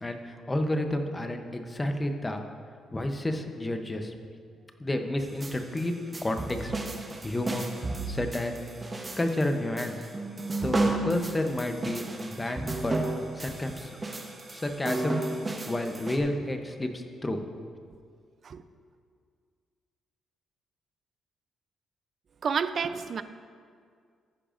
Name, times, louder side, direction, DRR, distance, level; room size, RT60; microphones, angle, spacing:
voice 1, 0.0-2.4 2.9-4.1 4.8-5.9 6.2-6.8 7.2-7.7 8.1-8.6 9.2-10.0 10.6-13.0 13.4-13.9 14.5-15.2 15.7-17.4, left 1 dB, 15° left, 5 dB, 0.7 m, -30 dB
sound 1, 5.2-16.2, right 2 dB, 20° right, 0.8 m, -33 dB
voice 2, 22.4-23.2, right 6 dB, 45° right, 12 dB, 0.4 m, -29 dB
14.0 x 10.0 x 2.5 m, 2.2 s
cardioid pair, 135°, 0 cm